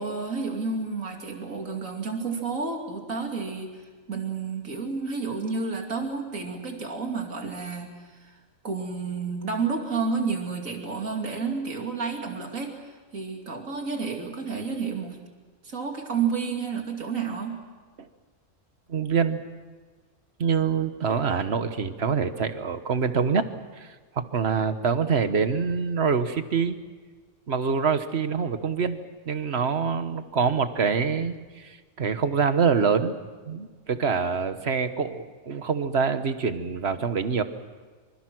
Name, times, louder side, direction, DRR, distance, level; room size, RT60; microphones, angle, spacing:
voice 1, 0.0-3.7 4.1-7.9 8.2-8.4 8.6-15.2 15.6-17.6, right 5 dB, 85° right, 2 dB, 3.1 m, -30 dB
voice 2, 18.9-19.4 20.4-23.5 23.8-26.8 27.5-29.0 29.3-33.1 33.5-37.4, right 6 dB, 55° right, 10 dB, 1.4 m, -25 dB
26.0 x 25.5 x 6.2 m, 1.4 s
omnidirectional pair, 1.4 m